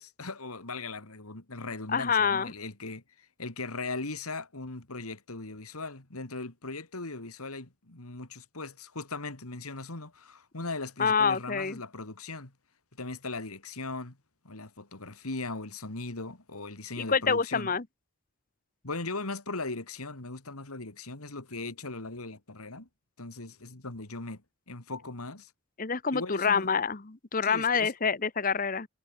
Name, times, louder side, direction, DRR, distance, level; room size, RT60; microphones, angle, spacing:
voice 1, 0.0-12.5 13.0-14.2 14.4-17.7 18.8-22.9 23.2-24.4 24.7-25.5 26.1-26.7 27.4-27.9, left 3 dB, 85° left, 2.8 m, -39 dB
voice 2, 1.9-2.5 11.0-11.8 17.0-17.8 25.8-28.9, left 5 dB, 40° left, 1.0 m, -27 dB
head